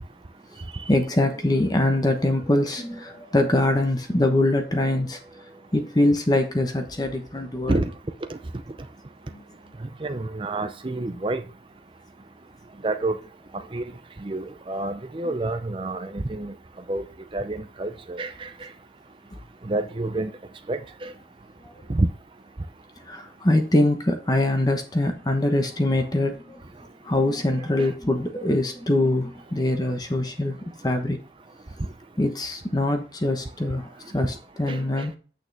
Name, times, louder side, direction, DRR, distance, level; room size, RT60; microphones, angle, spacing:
voice 1, 0.9-7.8 9.3-9.4 15.3-15.4 21.6-21.7 23.1-26.6 27.0-30.6 30.8-31.2 32.2-35.2, left 1 dB, 20° left, 1.0 m, -23 dB
voice 2, 9.8-11.4 12.8-13.2 13.7-13.8 14.2-16.5 16.9-17.1 17.3-18.7 19.6-20.3 20.7-21.1 21.9-22.1 27.8-27.9 34.7-34.8, right 2 dB, 30° right, 0.5 m, -28 dB
8.5 x 6.6 x 3.4 m
head